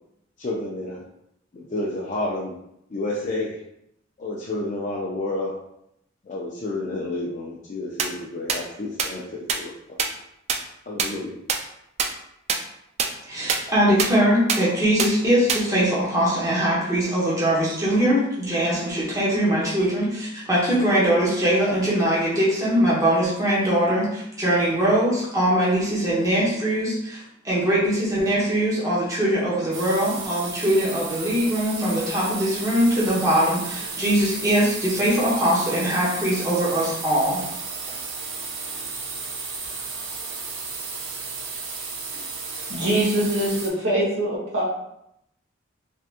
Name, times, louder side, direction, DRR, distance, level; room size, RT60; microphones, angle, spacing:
voice 1, 0.4-1.0 1.5-2.5 2.9-3.6 4.2-5.5 6.2-9.7 10.9-11.4, left 2 dB, 40° left, -4 dB, 0.4 m, -30 dB
sound 1, 8.0-8.1 8.5-8.6 9.0-9.1 9.5-9.6 10.0-10.1 10.5-10.6 11.0-11.1 11.5-11.6 12.0-12.1 12.5-12.6 13.0-13.1 13.5-13.6 14.0-14.1 14.5-14.6 15.0-15.1 15.5-15.6, right 6 dB, 35° right, 0.3 m, -22 dB
voice 2, 13.3-37.4, equal, 15° right, -8 dB, 0.9 m, -22 dB
sound 2, 29.7-43.7, right 4 dB, 85° right, 0.6 m, -33 dB
voice 3, 42.7-44.6, right 1 dB, 65° right, -6 dB, 1.5 m, -23 dB
3.4 x 2.8 x 2.5 m, 0.79 s
head